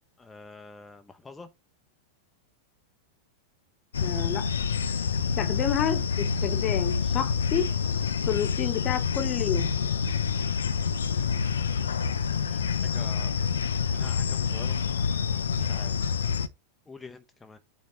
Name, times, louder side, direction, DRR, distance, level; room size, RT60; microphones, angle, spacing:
voice 1, 0.2-1.5 12.5-13.5 13.9-14.8 15.1-15.9 16.9-17.6, left 3 dB, 10° left, 0.9 m, -46 dB
sound 1, 3.9-16.5, left 6 dB, 70° left, 0.6 m, -27 dB
voice 2, 4.0-4.5 5.4-7.7 8.2-9.7, left 9 dB, 35° left, 1.2 m, -29 dB
8.4 x 4.2 x 3.3 m
figure-of-eight pair, 90°, 0 cm